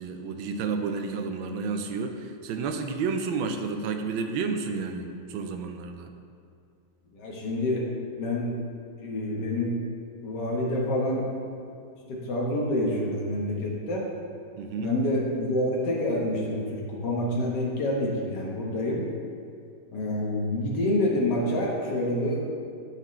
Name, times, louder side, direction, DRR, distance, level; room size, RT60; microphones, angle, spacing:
voice 1, 0.0-6.1 14.6-14.9, right 4 dB, 90° right, 6 dB, 1.4 m, -31 dB
voice 2, 7.1-7.8 8.2-8.5 9.0-9.7 10.2-11.5 12.1-14.0 14.8-19.0 19.9-22.4, left 1 dB, 65° left, -3 dB, 1.7 m, -27 dB
12.5 x 4.3 x 3.1 m, 2.3 s
omnidirectional pair, 2.1 m